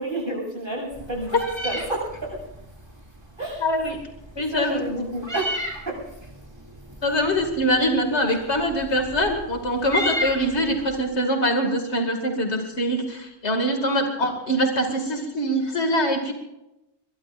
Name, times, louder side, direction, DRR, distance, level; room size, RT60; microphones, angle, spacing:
voice 1, 0.0-2.3 3.4-3.7 4.5-5.6 5.9-6.0 7.1-7.2, right 1 dB, 50° right, -1 dB, 7.7 m, -30 dB
Meow, 0.9-11.0, left 1 dB, 25° right, 2.6 m, -35 dB
voice 2, 3.6-4.0 4.4-4.8 7.0-16.3, equal, 85° left, 3 dB, 2.6 m, -23 dB
22.5 x 22.0 x 2.6 m, 0.92 s
omnidirectional pair, 1.1 m